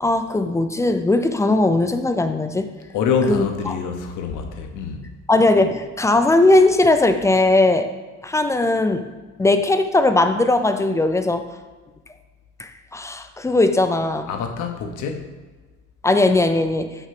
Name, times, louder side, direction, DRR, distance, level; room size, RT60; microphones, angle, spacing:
voice 1, 0.0-2.7 3.3-3.8 5.3-7.9 8.2-9.0 9.4-11.4 12.6-14.3 16.0-16.9, left 2 dB, 10° left, 8 dB, 0.3 m, -18 dB
voice 2, 2.9-5.1 14.3-15.3, left 5 dB, 75° left, 5 dB, 1.0 m, -25 dB
5.9 x 4.5 x 5.8 m, 1.3 s
cardioid pair, 145°, 31 cm